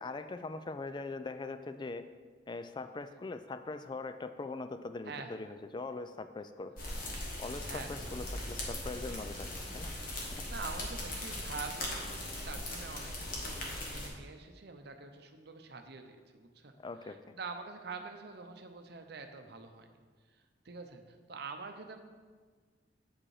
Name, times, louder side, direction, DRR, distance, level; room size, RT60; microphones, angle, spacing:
voice 1, 0.0-2.1 2.5-6.7 7.4-9.9 16.8-17.2, left 3 dB, 25° left, 10 dB, 0.3 m, -41 dB
Forest after winter, 6.8-14.1, left 1 dB, 50° left, 1.5 m, -39 dB
voice 2, 7.7-8.1 10.1-16.7 17.0-19.9 20.3-22.0, right 4 dB, 60° right, 6 dB, 0.7 m, -46 dB
8.6 x 5.1 x 4.8 m, 1.5 s
head